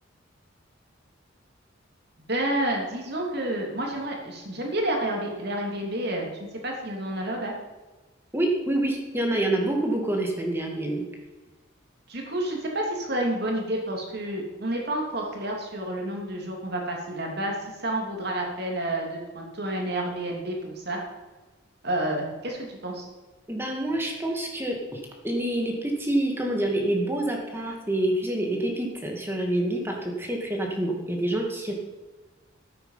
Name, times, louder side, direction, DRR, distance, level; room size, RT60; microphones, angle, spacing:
voice 1, 2.3-6.3 6.6-7.5 12.1-17.5 17.8-21.0 21.8-23.1, right 1 dB, 55° right, 0 dB, 2.9 m, -29 dB
voice 2, 8.3-11.0 23.5-31.7, right 1 dB, 10° right, 1 dB, 2.1 m, -27 dB
13.0 x 9.1 x 5.7 m, 1.2 s
head